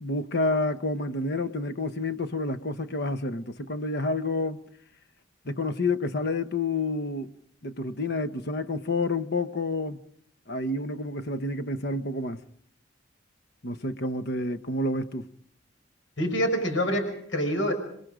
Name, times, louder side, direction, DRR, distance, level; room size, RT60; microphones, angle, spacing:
voice 1, 0.0-4.6 5.4-7.3 7.6-10.0 10.5-12.4 13.6-15.3, left 2 dB, 60° left, 1.1 m, -29 dB
voice 2, 16.2-17.7, equal, 85° left, 5.6 m, -26 dB
29.0 x 21.5 x 5.1 m
head